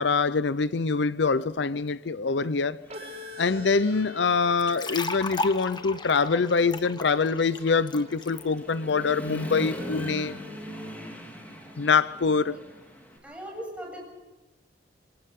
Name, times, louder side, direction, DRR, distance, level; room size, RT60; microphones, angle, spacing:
voice 1, 0.0-2.8 3.4-10.4 11.8-12.6, left 4 dB, 75° left, 0.6 m, -24 dB
Human voice / Motorcycle, 1.9-2.0 2.5-4.2 4.6-13.2, equal, 10° left, 4.0 m, -41 dB
sound 1, 2.9-10.9, left 6 dB, 40° right, 4.4 m, -46 dB
sound 2, 4.6-8.4, left 3 dB, 25° left, 1.2 m, -35 dB
voice 2, 13.2-14.0, equal, 5° right, 7.8 m, -39 dB
27.5 x 26.5 x 3.7 m
head